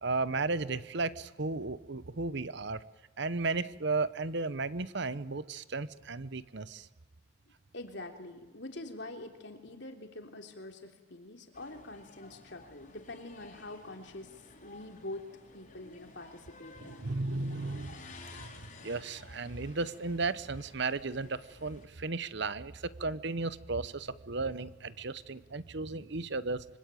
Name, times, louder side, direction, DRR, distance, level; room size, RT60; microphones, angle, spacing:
voice 1, 0.0-2.8 3.2-6.9 16.8-18.0 18.3-18.4 18.8-26.6, right 3 dB, 60° right, 16 dB, 0.9 m, -34 dB
voice 2, 7.7-15.3 15.5-17.2, left 2 dB, 60° left, 5 dB, 3.4 m, -45 dB
sound 1, 11.5-21.9, left 3 dB, 40° left, 4.1 m, -53 dB
25.5 x 25.0 x 9.1 m, 1.0 s
head